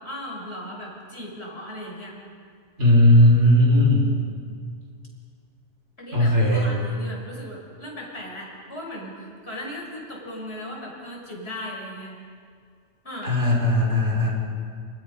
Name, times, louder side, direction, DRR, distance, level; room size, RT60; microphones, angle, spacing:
voice 1, 0.0-2.2 6.0-12.2 13.0-13.3, left 1 dB, 60° left, -2 dB, 6.4 m, -37 dB
voice 2, 2.8-4.1 6.1-6.7 13.2-14.3, left 1 dB, 70° right, -2 dB, 5.8 m, -17 dB
29.5 x 27.0 x 5.4 m, 2.2 s
omnidirectional pair, 1.2 m